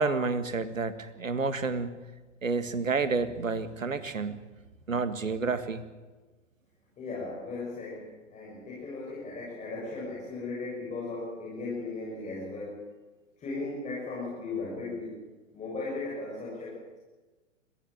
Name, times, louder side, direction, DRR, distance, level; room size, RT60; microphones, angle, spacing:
voice 1, 0.0-1.9 2.4-4.4 4.9-5.8, right 4 dB, 85° right, 12 dB, 1.8 m, -29 dB
voice 2, 7.0-12.8 13.4-15.2 15.5-16.8, left 3 dB, 20° left, -5 dB, 6.7 m, -37 dB
21.5 x 16.0 x 8.8 m, 1.2 s
figure-of-eight pair, 115°, 38 cm